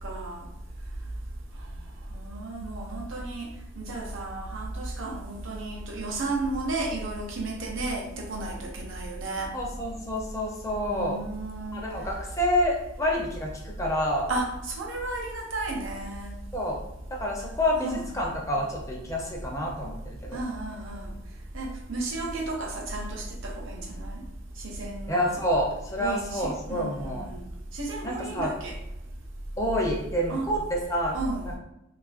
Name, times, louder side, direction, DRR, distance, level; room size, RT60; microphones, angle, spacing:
voice 1, 0.0-0.4 2.1-3.5 3.8-9.5 10.9-11.8 14.3-16.3 17.8-18.0 20.3-21.1 21.5-24.2 24.6-25.4 26.0-27.4 27.7-28.8 30.3-30.5 31.1-31.5, right 2 dB, 65° right, 0 dB, 0.6 m, -33 dB
voice 2, 9.5-11.2 11.7-14.3 16.5-16.8 17.1-20.0 20.2-20.4 25.1-27.3 28.0-28.5 29.6-31.1, equal, 15° left, -1 dB, 0.4 m, -28 dB
3.1 x 2.4 x 2.4 m, 0.87 s
head